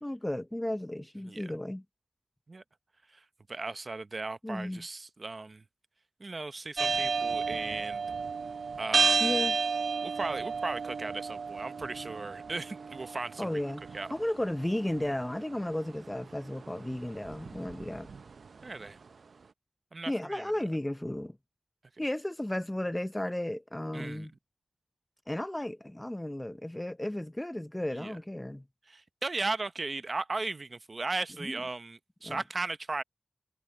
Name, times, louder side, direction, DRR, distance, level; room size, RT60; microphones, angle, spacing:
voice 1, 0.0-1.8 4.4-4.8 9.2-9.6 13.4-13.8 14.1-18.1 20.1-21.4 22.0-24.3 25.3-28.7 31.4-31.7 32.2-32.4, left 1 dB, 15° left, 0.6 m, -34 dB
voice 2, 3.1-5.6 6.2-8.0 8.8-9.3 10.0-13.6 13.9-14.1 18.6-19.0 19.9-20.5 23.9-24.3 28.0-28.1 28.9-33.0, right 3 dB, 50° right, 0.9 m, -37 dB
sound 1, 6.8-18.9, right 5 dB, 80° right, 0.5 m, -33 dB
cardioid pair, 55°, 0 cm